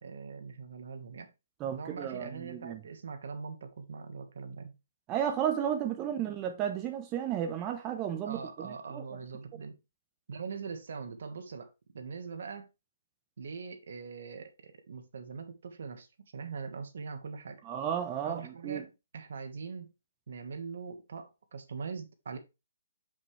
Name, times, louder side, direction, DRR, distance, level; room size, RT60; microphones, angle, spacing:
voice 1, 0.0-1.3 1.7-4.7 8.2-9.8 10.3-11.7 11.9-12.7 13.4-16.1 16.3-17.6 18.2-19.9 20.3-22.4, right 5 dB, 65° right, 1.4 m, -42 dB
voice 2, 1.6-2.8 5.1-9.0 17.6-18.8, right 9 dB, 20° right, 0.9 m, -33 dB
7.6 x 5.4 x 3.3 m
hypercardioid pair, 155°, 0 cm